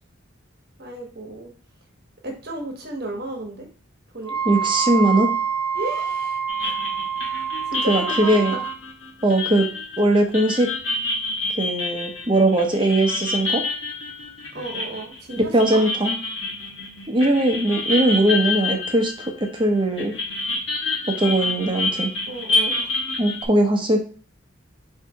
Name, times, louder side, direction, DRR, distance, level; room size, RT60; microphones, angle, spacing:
voice 1, 0.8-1.5 2.2-3.7 4.1-4.4 5.7-6.8 7.7-8.6 14.5-15.8 22.3-22.9, right 2 dB, 50° right, 3 dB, 1.0 m, -34 dB
Wind instrument woodwind instrument, 4.2-8.8, right 7 dB, 25° left, 0.7 m, -26 dB
voice 2, 4.5-5.3 7.9-8.6 9.2-9.7 10.0-10.7 11.5-13.6 15.5-16.1 17.1-20.1 21.2-22.1 23.2-24.0, right 1 dB, 25° right, 3 dB, 0.7 m, -20 dB
sound 1, 6.5-19.6 20.0-23.4, left 3 dB, 65° left, 1.1 m, -28 dB
4.0 x 2.7 x 4.7 m, 0.42 s
head